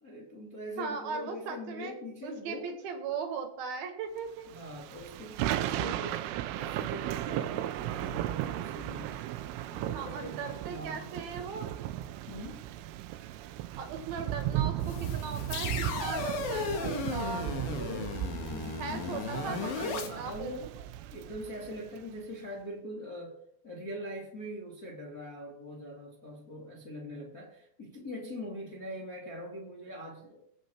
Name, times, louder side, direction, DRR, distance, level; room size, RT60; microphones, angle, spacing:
voice 1, 0.0-2.7 4.5-6.3 6.5-9.2 9.7-11.0 12.3-12.6 17.4-20.7 21.1-23.4 23.6-30.4, equal, 40° left, -2 dB, 1.3 m, -42 dB
voice 2, 0.8-1.9 2.2-4.5 9.9-11.7 13.8-17.6 18.8-20.5, right 5 dB, 60° right, 6 dB, 2.8 m, -38 dB
Thunder / Rain, 4.5-22.0, right 13 dB, 80° right, 3.2 m, -36 dB
sound 1, 14.8-20.1, left 4 dB, 60° left, 2.8 m, -36 dB
22.0 x 7.9 x 4.6 m, 0.76 s
omnidirectional pair, 5.8 m